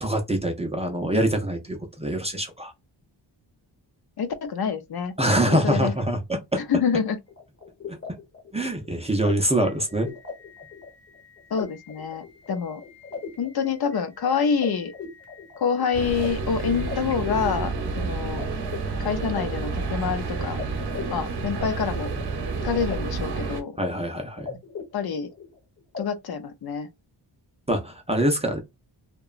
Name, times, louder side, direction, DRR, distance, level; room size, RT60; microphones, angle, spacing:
voice 1, 0.0-2.7 5.2-6.6 7.9-8.0 8.5-10.1 23.8-24.6 27.7-28.6, right 1 dB, 15° right, 0.4 m, -24 dB
voice 2, 4.2-5.1 5.5-5.9 6.6-7.2 11.5-12.8 13.4-14.9 15.6-18.4 19.0-20.6 21.1-22.1 22.6-23.8 24.9-25.3 26.0-26.9, left 6 dB, 55° left, 0.5 m, -27 dB
sound 1, 7.3-18.4 18.7-20.2 20.6-20.7 20.9-23.0 23.2-23.9 24.1-25.6 25.9-26.0, left 5 dB, 30° left, 1.0 m, -39 dB
sound 2, 15.9-23.6, right 4 dB, 60° right, 0.9 m, -30 dB
2.8 x 2.2 x 2.3 m
wide cardioid pair, 150°, 45 cm